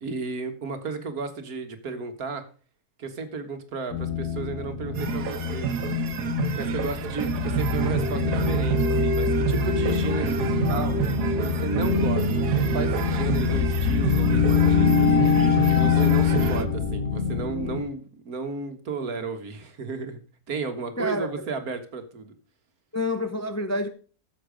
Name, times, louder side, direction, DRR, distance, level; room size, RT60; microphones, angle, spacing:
voice 1, 0.0-2.5 3.0-5.7 6.5-11.0 11.4-12.3 12.6-15.1 15.7-20.2 20.5-22.3, right 4 dB, 65° right, 1.9 m, -33 dB
sound 1, 3.9-17.8, left 5 dB, 65° left, 2.5 m, -24 dB
sound 2, 4.9-16.7, right 9 dB, 85° right, 1.5 m, -30 dB
voice 2, 21.0-21.5 22.9-23.9, left 1 dB, 15° left, 0.7 m, -28 dB
13.5 x 7.2 x 5.1 m
omnidirectional pair, 1.7 m